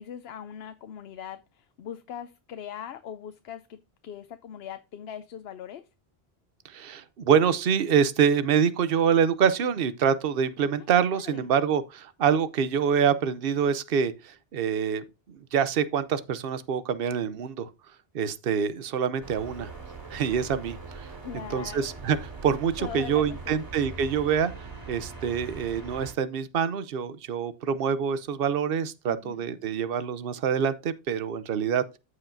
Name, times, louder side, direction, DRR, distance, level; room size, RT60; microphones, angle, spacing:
voice 1, 0.0-5.9 10.8-10.9 11.1-11.5 21.2-21.9 22.8-23.6 29.1-29.5, left 9 dB, 80° left, 0.8 m, -41 dB
voice 2, 6.6-17.7 18.1-19.7 20.1-21.1 21.5-32.0, right 7 dB, 65° right, 0.9 m, -26 dB
sound 1, 19.2-26.1, right 4 dB, 25° right, 2.7 m, -41 dB
14.5 x 4.9 x 2.6 m
omnidirectional pair, 1.1 m